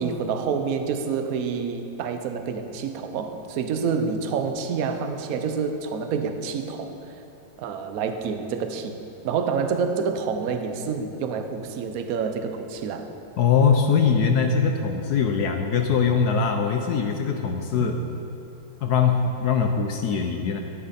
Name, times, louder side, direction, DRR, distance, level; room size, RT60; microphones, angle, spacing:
voice 1, 0.0-7.2 7.6-9.0 9.2-13.1 17.8-18.0, right 5 dB, 60° right, 7 dB, 1.0 m, -28 dB
voice 2, 13.4-18.0 18.8-20.6, left 6 dB, 65° left, 4 dB, 1.1 m, -22 dB
13.0 x 10.0 x 4.2 m, 2.9 s
omnidirectional pair, 2.1 m